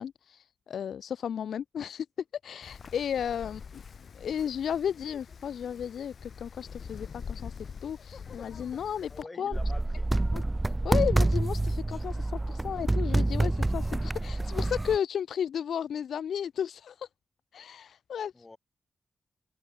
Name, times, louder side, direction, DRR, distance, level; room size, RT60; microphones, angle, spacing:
voice 1, 0.0-2.1 2.4-3.8 4.1-7.5 7.8-9.6 10.3-10.4 10.8-17.1 17.5-18.3, left 8 dB, 85° left, 0.3 m, -34 dB
Wind, 2.6-9.2, left 6 dB, 65° left, 6.9 m, -45 dB
voice 2, 9.1-10.2 18.3-18.6, left 2 dB, 30° left, 4.7 m, -47 dB
sound 1, 9.5-15.0, right 2 dB, 20° right, 1.4 m, -27 dB
cardioid pair, 55°, 0 cm